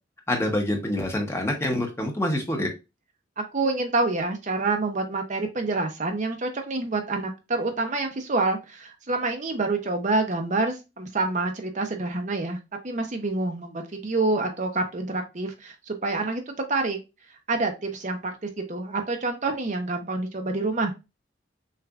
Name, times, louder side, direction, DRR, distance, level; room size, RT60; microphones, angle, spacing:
voice 1, 0.3-2.7, left 1 dB, 15° left, 2 dB, 0.9 m, -26 dB
voice 2, 3.4-12.6 12.8-17.0 17.5-20.9, right 3 dB, 40° right, 4 dB, 0.7 m, -27 dB
6.5 x 2.5 x 2.4 m, 0.26 s
head